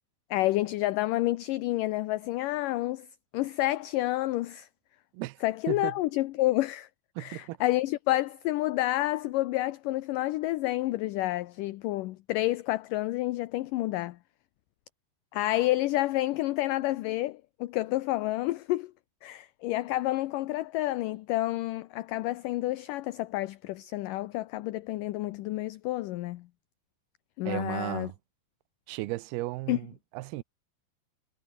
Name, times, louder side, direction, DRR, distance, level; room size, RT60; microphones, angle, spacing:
voice 1, 0.3-3.1 3.3-4.7 5.4-6.9 7.2-14.2 15.3-18.9 19.2-26.5 27.4-28.1 29.7-29.8, left 17 dB, 75° left, 2.1 m, -29 dB
voice 2, 5.1-5.9 7.2-7.6 27.5-28.1 28.9-30.4, right 19 dB, 90° right, 2.7 m, -35 dB
omnidirectional pair, 4.5 m